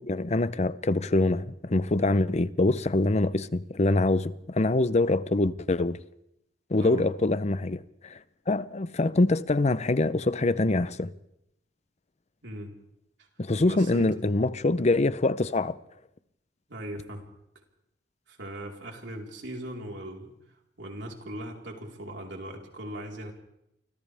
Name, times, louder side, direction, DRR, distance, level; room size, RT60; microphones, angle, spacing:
voice 1, 0.0-6.0 6.7-8.2 8.5-11.1 13.4-15.8, left 2 dB, 40° left, 0.7 m, -25 dB
voice 2, 12.4-12.7 13.2-13.3 13.6-14.1 16.7-17.2 18.3-20.3 20.8-23.3, right 1 dB, 75° right, 4.3 m, -39 dB
29.5 x 25.0 x 3.5 m
head